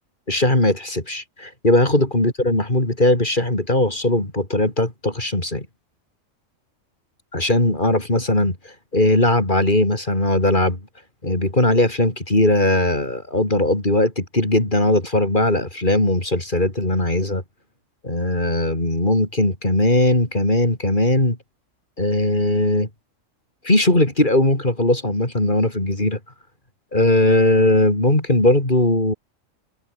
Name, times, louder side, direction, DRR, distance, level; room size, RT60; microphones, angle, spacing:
voice 1, 0.3-5.7 7.3-10.8 11.2-17.4 18.0-21.4 22.0-22.9 23.6-26.2 26.9-29.1, left 1 dB, 35° left, 4.9 m, -19 dB
omnidirectional pair, 1.4 m